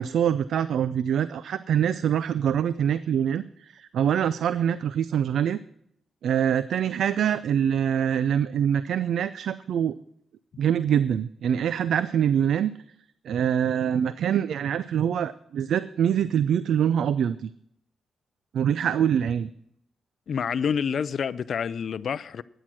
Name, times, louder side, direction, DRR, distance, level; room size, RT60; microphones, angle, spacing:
voice 1, 0.0-5.6 6.2-9.9 10.6-12.7 13.2-17.5 18.5-19.5, right 9 dB, 80° right, 0.4 m, -24 dB
voice 2, 20.3-22.4, left 7 dB, 60° left, 0.4 m, -28 dB
13.0 x 9.2 x 6.1 m
wide cardioid pair, 125°, 0 cm